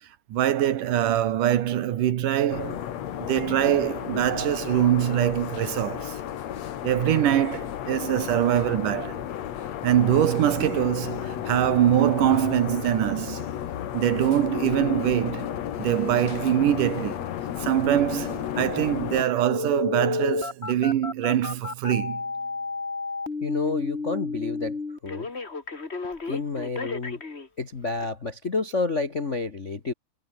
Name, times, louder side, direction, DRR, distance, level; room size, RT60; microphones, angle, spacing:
voice 1, 0.3-6.2 6.8-9.2 9.8-13.4 13.9-15.5 15.8-17.2 17.6-22.2, right 11 dB, 75° right, 3.0 m, -23 dB
sound 1, 2.5-19.2, left 10 dB, 60° left, 2.4 m, -33 dB
Telephone, 19.5-27.5 28.0-28.1, left 4 dB, 25° left, 2.0 m, -31 dB
voice 2, 23.4-25.3 26.3-27.2 27.6-29.9, left 3 dB, 40° left, 1.0 m, -29 dB
omnidirectional pair, 3.8 m